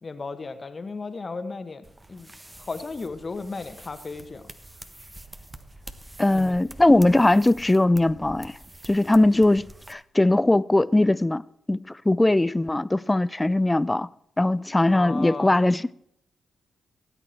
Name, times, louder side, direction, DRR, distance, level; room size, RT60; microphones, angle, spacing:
voice 1, 0.0-2.3 2.6-4.4 6.3-6.6 14.9-15.7, left 4 dB, 40° left, 1.4 m, -35 dB
sound 1, 1.8-9.9, right 1 dB, 15° right, 1.2 m, -46 dB
voice 2, 6.2-8.6 8.8-11.4 11.7-14.1 14.4-15.9, left 2 dB, 20° left, 0.4 m, -20 dB
18.5 x 8.8 x 4.5 m
supercardioid pair, 45°, 0 cm